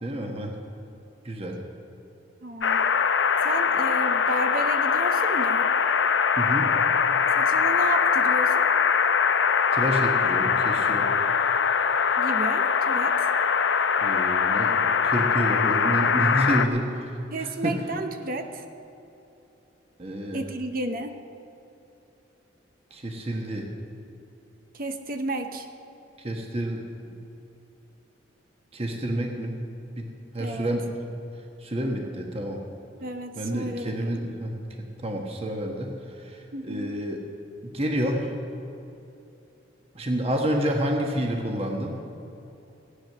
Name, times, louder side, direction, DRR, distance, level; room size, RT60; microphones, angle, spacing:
voice 1, 0.0-0.5 1.2-1.6 6.4-6.8 9.7-11.1 14.0-17.1 17.4-17.8 20.0-20.4 22.9-23.7 26.2-26.8 27.1-27.2 28.7-29.6 30.0-31.1 31.6-32.6 33.4-34.5 35.0-35.9 36.2-37.2 37.6-38.3 39.9-42.0, equal, 30° right, 2 dB, 1.3 m, -29 dB
voice 2, 2.4-2.9 3.4-5.7 7.3-8.7 12.2-13.3 17.3-18.6 20.3-21.1 24.7-25.7 30.4-30.7 33.0-34.1 36.5-36.9, right 2 dB, 50° right, 7 dB, 0.7 m, -32 dB
sound 1, 2.6-16.7, left 6 dB, 70° left, 0.6 m, -22 dB
16.5 x 9.3 x 6.6 m, 2.9 s
head